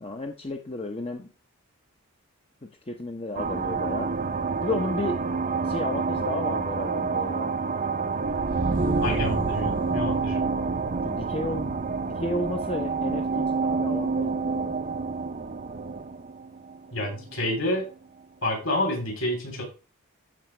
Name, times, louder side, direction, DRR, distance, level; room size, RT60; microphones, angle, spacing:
voice 1, 0.0-1.3 2.9-4.1 4.6-5.2 5.7-7.5 11.0-11.7 12.2-14.7, left 2 dB, 25° left, 4 dB, 0.7 m, -32 dB
sound 1, 3.3-17.5, right 4 dB, 35° right, 0.6 m, -28 dB
voice 2, 9.0-10.4 16.9-17.9 18.4-19.6, left 1 dB, 60° left, 2 dB, 3.3 m, -28 dB
13.5 x 5.0 x 3.2 m, 0.32 s
head